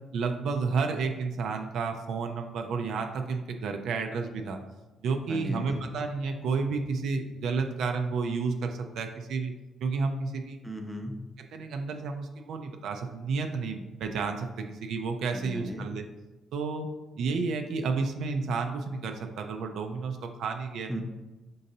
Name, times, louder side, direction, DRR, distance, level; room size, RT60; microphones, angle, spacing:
voice 1, 0.1-4.6 5.0-9.5 9.8-10.6 11.5-16.1 16.5-16.9 17.2-20.9, right 4 dB, 75° right, 5 dB, 0.4 m, -31 dB
voice 2, 5.3-5.8 10.6-11.2 15.3-15.9 20.9-21.0, equal, ahead, 2 dB, 0.7 m, -36 dB
5.3 x 3.8 x 2.7 m, 1.1 s
cardioid pair, 90°, 0 cm